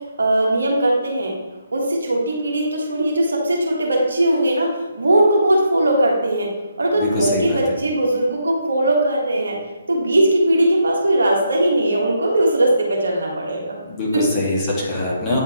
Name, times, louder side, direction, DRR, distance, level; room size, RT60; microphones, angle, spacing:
voice 1, 0.2-1.4 1.7-6.5 6.8-9.6 9.9-13.8 14.1-14.4, right 1 dB, 70° right, 0 dB, 1.3 m, -19 dB
voice 2, 7.0-7.6 13.9-15.4, left 2 dB, 20° left, -6 dB, 1.7 m, -22 dB
8.9 x 3.6 x 3.0 m, 1.1 s
figure-of-eight pair, 135°, 0 cm